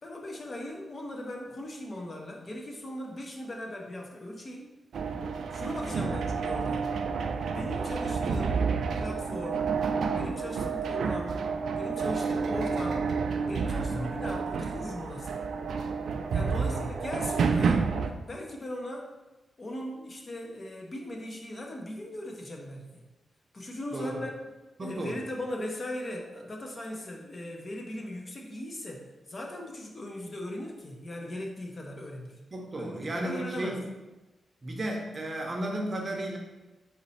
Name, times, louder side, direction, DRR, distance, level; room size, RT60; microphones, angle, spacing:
voice 1, 0.0-4.8 5.5-7.0 7.5-8.6 8.9-9.6 10.2-11.4 11.8-13.1 13.4-15.4 16.3-17.9 18.3-19.1 19.6-23.0 23.5-24.3 24.8-32.4 32.7-33.8, left 1 dB, 30° left, 0 dB, 0.6 m, -39 dB
sound 1, 4.9-18.1, right 5 dB, 70° right, 0.3 m, -30 dB
voice 2, 13.9-14.2 16.5-16.8 23.9-24.2 24.8-25.2 32.5-33.8 34.6-36.4, right 1 dB, 30° right, 1 dB, 0.7 m, -34 dB
4.2 x 3.0 x 4.1 m, 1.1 s
wide cardioid pair, 155°, 0 cm